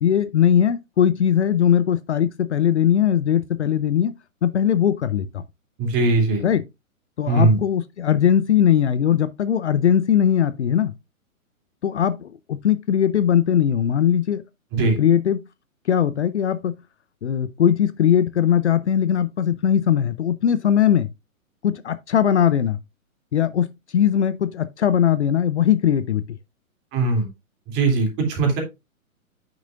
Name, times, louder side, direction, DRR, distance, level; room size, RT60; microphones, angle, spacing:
voice 1, 0.0-4.1 4.4-5.4 6.4-6.6 7.2-10.9 11.8-14.4 15.0-15.4 15.9-16.8 17.2-21.1 21.6-22.8 23.3-23.7 23.9-26.2, left 9 dB, 50° left, 0.6 m, -20 dB
voice 2, 5.8-6.4 7.3-7.6 14.7-15.0 26.9-27.3 27.7-28.6, right 3 dB, 25° right, 2.8 m, -20 dB
9.0 x 6.2 x 2.4 m
figure-of-eight pair, 120°, 43 cm